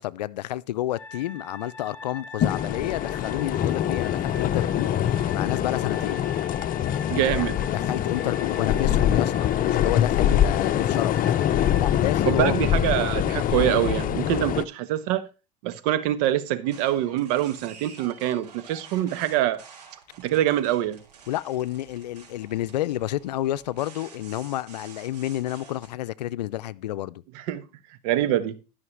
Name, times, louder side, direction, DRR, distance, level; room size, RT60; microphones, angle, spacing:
voice 1, 0.0-4.9 5.3-6.3 7.3-11.2 11.8-12.6 21.3-27.2, left 14 dB, 90° left, 0.5 m, -30 dB
sound 1, 1.0-12.5, left 3 dB, 10° left, 3.5 m, -43 dB
sound 2, 2.4-14.6, left 10 dB, 45° left, 0.8 m, -24 dB
voice 2, 7.1-7.6 12.3-15.3 15.6-19.6 20.2-21.0 27.3-27.7 28.0-28.6, right 12 dB, 70° right, 1.3 m, -25 dB
sound 3, 16.6-25.9, right 6 dB, 90° right, 4.1 m, -49 dB
13.0 x 5.8 x 4.6 m
hypercardioid pair, 85°, 21 cm